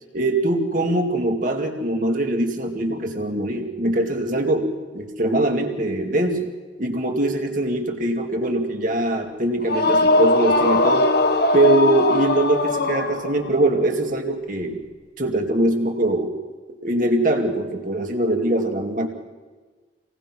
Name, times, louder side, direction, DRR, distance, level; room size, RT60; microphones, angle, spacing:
voice 1, 0.1-6.5 6.8-11.1 11.5-14.8 15.2-16.4 16.8-19.1, right 1 dB, 45° right, 3 dB, 2.5 m, -22 dB
sound 1, 9.6-13.6, left 2 dB, 55° left, 1.4 m, -20 dB
26.5 x 18.5 x 6.2 m, 1.4 s
head